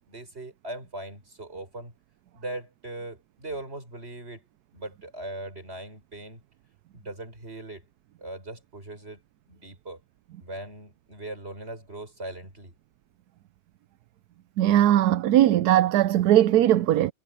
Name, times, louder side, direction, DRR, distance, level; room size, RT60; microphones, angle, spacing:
voice 1, 0.1-1.9 2.3-4.4 4.7-6.4 6.9-7.8 8.2-9.2 9.5-10.0 10.4-12.7, right 1 dB, 35° right, 6.8 m, -39 dB
voice 2, 14.6-17.1, right 12 dB, 75° right, 1.1 m, -19 dB
omnidirectional pair, 1.8 m